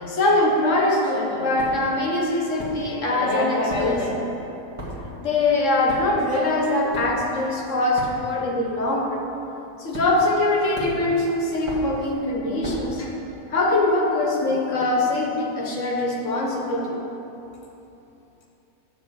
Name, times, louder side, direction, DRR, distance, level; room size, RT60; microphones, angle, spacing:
voice 1, 0.0-4.3 5.2-9.2 9.8-13.1 13.5-17.0, left 2 dB, 55° left, -1 dB, 1.3 m, -22 dB
sound 1, 1.6-2.0 2.6-3.2 3.5-8.6 8.9-9.2 9.9-10.4 10.7-13.0, equal, 20° right, 1.5 m, -36 dB
9.4 x 4.2 x 6.8 m, 2.9 s
omnidirectional pair, 1.6 m